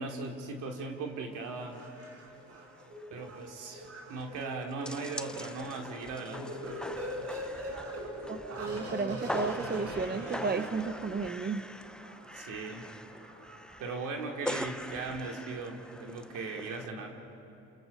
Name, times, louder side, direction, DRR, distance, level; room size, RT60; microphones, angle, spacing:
voice 1, 0.0-1.8 3.1-6.8 7.9-8.0 12.3-12.9 13.8-17.2, right 3 dB, 90° right, 2 dB, 2.8 m, -38 dB
sound 1, 0.8-0.9 1.2-1.3 1.7-2.0 2.3-2.4 2.7-16.9, left 1 dB, 5° left, 0.7 m, -43 dB
sound 2, 1.3-11.2 11.8-14.9 15.5-15.6, equal, 55° right, 4.5 m, -43 dB
voice 2, 8.3-11.6, right 4 dB, 30° right, 9 dB, 1.0 m, -33 dB
29.0 x 27.5 x 5.3 m, 2.8 s
cardioid pair, 90°, 30 cm